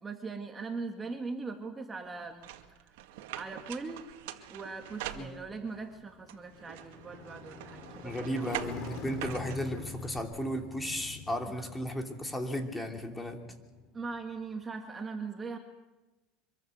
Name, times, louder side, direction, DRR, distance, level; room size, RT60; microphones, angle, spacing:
voice 1, 0.0-2.9 3.3-4.1 4.5-9.2 11.5-11.8 13.9-15.6, right 4 dB, 20° right, 3 dB, 2.0 m, -41 dB
sound 1, 2.4-5.8 6.3-10.2, right 12 dB, 80° right, 2.2 m, -44 dB
Motorcycle, 4.6-14.5, left 4 dB, 45° left, 6.6 m, -46 dB
voice 2, 8.0-13.4, equal, 10° left, 3 dB, 3.0 m, -35 dB
25.0 x 23.0 x 6.6 m, 1.1 s
supercardioid pair, 130°, 0 cm